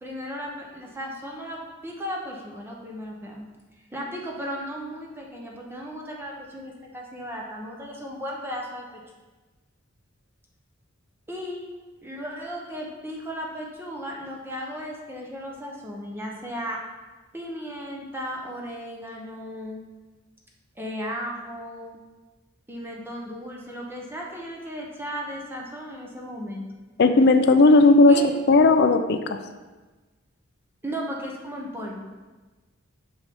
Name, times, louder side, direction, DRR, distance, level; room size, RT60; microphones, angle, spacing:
voice 1, 0.0-3.4 3.9-8.9 11.3-11.6 12.0-16.8 17.3-19.8 20.8-22.0 22.7-26.6 28.1-28.3 30.8-32.1, equal, 10° right, -2 dB, 0.9 m, -35 dB
voice 2, 27.0-29.4, left 3 dB, 55° left, 8 dB, 0.5 m, -16 dB
7.9 x 5.5 x 3.6 m, 1.2 s
head